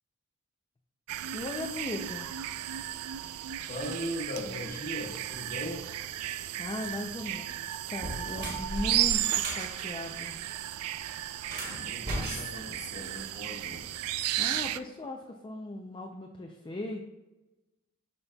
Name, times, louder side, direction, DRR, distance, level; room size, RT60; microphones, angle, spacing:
sound 1, 1.1-14.8, right 12 dB, 80° right, 0.3 m, -34 dB
voice 1, 1.3-2.3 6.6-10.4 14.4-17.1, left 1 dB, 20° left, 1 dB, 0.4 m, -38 dB
voice 2, 3.6-5.8 11.6-13.9, equal, 40° left, 0 dB, 1.3 m, -39 dB
sound 2, 7.2-7.4 7.9-9.7 11.4-13.4, right 1 dB, 45° right, 2.2 m, -37 dB
12.0 x 4.1 x 2.3 m, 1.1 s
head